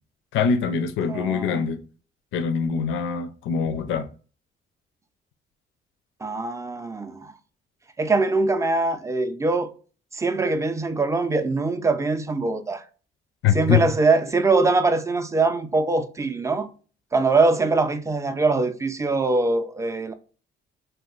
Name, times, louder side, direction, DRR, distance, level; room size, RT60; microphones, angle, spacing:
voice 1, 0.3-1.8 2.3-4.1 13.4-13.8, left 7 dB, 80° left, 0.4 m, -23 dB
voice 2, 1.1-1.7 6.2-7.3 8.0-9.7 10.1-12.8 13.5-16.7 17.1-20.1, right 3 dB, 15° right, 0.4 m, -23 dB
2.7 x 2.1 x 3.7 m
cardioid pair, 90°, 20 cm